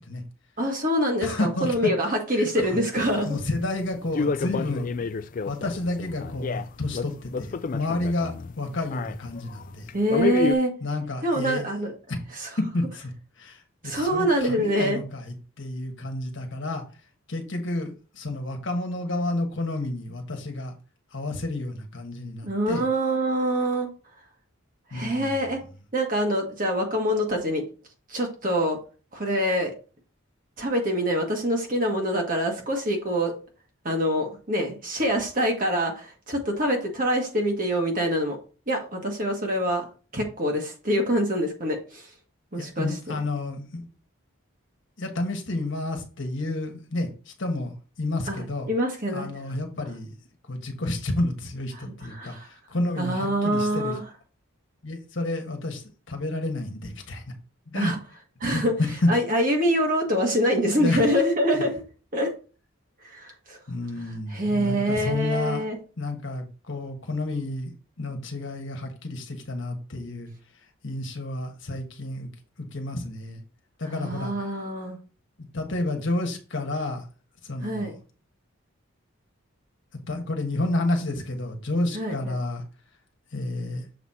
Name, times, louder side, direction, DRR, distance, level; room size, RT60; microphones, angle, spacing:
voice 1, 0.6-3.4 9.9-10.7 11.2-11.9 12.3-12.5 13.8-15.0 22.4-23.9 24.9-25.6 25.9-27.6 28.1-28.8 29.1-29.7 30.6-33.3 33.8-38.4 38.7-39.9 40.1-42.1 42.5-43.2 48.3-49.3 52.1-52.5 53.0-54.0 57.7-58.0 58.4-58.7 59.1-61.8 62.1-62.3 63.0-63.6 64.3-65.8 73.8-75.0 77.6-77.9 81.9-82.4, equal, 40° right, 2 dB, 1.7 m, -25 dB
voice 2, 1.2-1.9 2.3-2.7 3.2-4.9 5.5-9.9 10.8-11.6 12.1-12.2 12.6-13.1 13.4-16.8 17.3-20.7 21.1-22.8 24.9-25.3 42.6-43.8 45.0-47.7 48.0-48.7 49.1-50.1 50.5-53.9 54.8-57.2 57.7-57.9 58.5-59.1 60.8-61.0 63.7-65.6 66.0-67.7 68.0-70.3 70.8-72.3 72.6-73.4 73.8-74.3 75.4-77.0 77.4-78.0 80.1-82.6 83.3-83.8, left 2 dB, 60° left, 4 dB, 1.4 m, -30 dB
sound 1, 2.9-10.5, left 4 dB, 40° left, 0.3 m, -30 dB
6.9 x 4.1 x 4.3 m, 0.36 s
head